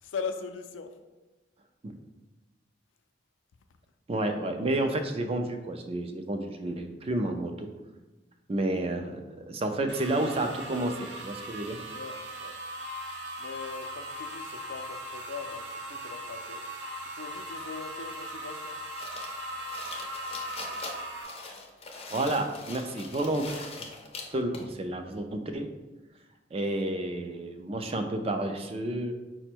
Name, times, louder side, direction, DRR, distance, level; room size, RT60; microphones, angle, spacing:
voice 1, 0.0-1.0 11.9-12.6 13.4-16.6 17.0-18.8, left 5 dB, 90° left, 7 dB, 0.4 m, -40 dB
voice 2, 4.1-7.7 8.5-11.8 22.1-23.5 23.8-23.9 24.3-25.7 26.5-29.1, right 1 dB, 30° right, 6 dB, 0.4 m, -30 dB
sound 1, 9.9-21.2, equal, 70° right, 0.7 m, -39 dB
sound 2, 19.0-24.7, left 3 dB, 30° left, 0.5 m, -42 dB
5.0 x 2.1 x 4.4 m, 1.2 s
head